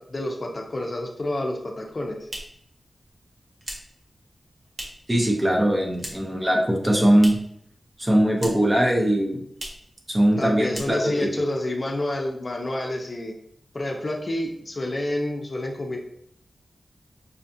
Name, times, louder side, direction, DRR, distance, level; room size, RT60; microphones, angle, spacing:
voice 1, 0.0-2.3 10.4-13.3 13.7-16.0, left 1 dB, 40° left, 1 dB, 0.6 m, -29 dB
sound 1, 1.9-5.2 5.5-6.4 6.7-7.6 7.9-8.8 9.1-9.2 9.5-9.9 10.3-10.4 10.7-11.3, right 1 dB, 45° right, 0.9 m, -39 dB
voice 2, 5.1-7.4 8.0-9.4 10.1-11.3, right 1 dB, 15° right, 0 dB, 0.7 m, -21 dB
5.6 x 2.4 x 2.7 m, 0.69 s
wide cardioid pair, 110°, 0 cm